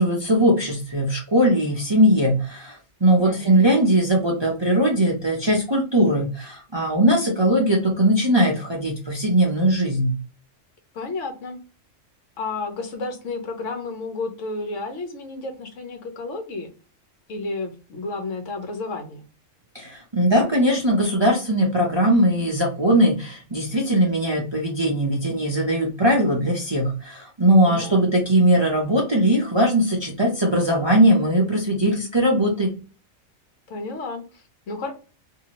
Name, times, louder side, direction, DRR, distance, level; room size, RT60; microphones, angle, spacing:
voice 1, 0.0-10.1 19.7-32.7, right 1 dB, 30° right, -1 dB, 0.6 m, -20 dB
voice 2, 3.2-3.6 10.9-11.6 12.4-16.7 17.3-19.3 27.5-28.0 33.7-34.9, left 3 dB, 70° left, 5 dB, 1.1 m, -32 dB
2.8 x 2.7 x 2.9 m, 0.34 s
omnidirectional pair, 1.4 m